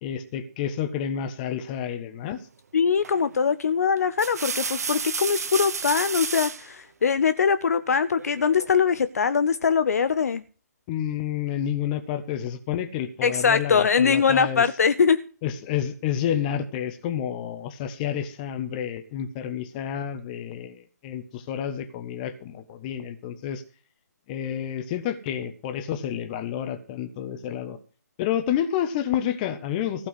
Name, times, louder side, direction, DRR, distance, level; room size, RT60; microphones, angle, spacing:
voice 1, 0.0-2.4 10.9-14.6 15.4-23.6 24.3-27.8 28.2-30.1, left 9 dB, 30° left, 1.4 m, -29 dB
voice 2, 2.7-10.4 13.2-15.2, left 6 dB, 60° left, 0.7 m, -22 dB
sound 1, 3.0-3.3 4.0-6.7 8.1-8.8, right 5 dB, 65° right, 0.9 m, -31 dB
15.5 x 5.3 x 7.9 m
figure-of-eight pair, 135°, 9 cm